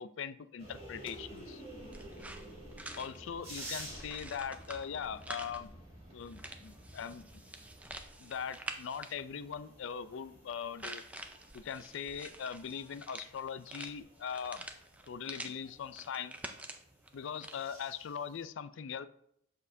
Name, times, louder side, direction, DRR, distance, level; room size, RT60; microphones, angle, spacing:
voice 1, 0.0-1.6 2.9-5.7 6.1-7.4 8.2-11.2 11.5-14.6 15.1-16.4 17.1-19.1, left 7 dB, 70° left, 14 dB, 0.4 m, -41 dB
sound 1, 0.6-18.4, right 1 dB, 30° right, 1.9 m, -52 dB
sound 2, 0.8-15.9, equal, 25° left, 0.7 m, -62 dB
sound 3, 1.9-5.6 6.2-9.2 10.8-15.5 15.8-17.6, right 2 dB, 5° right, 0.4 m, -47 dB
7.4 x 6.4 x 2.6 m, 0.72 s
head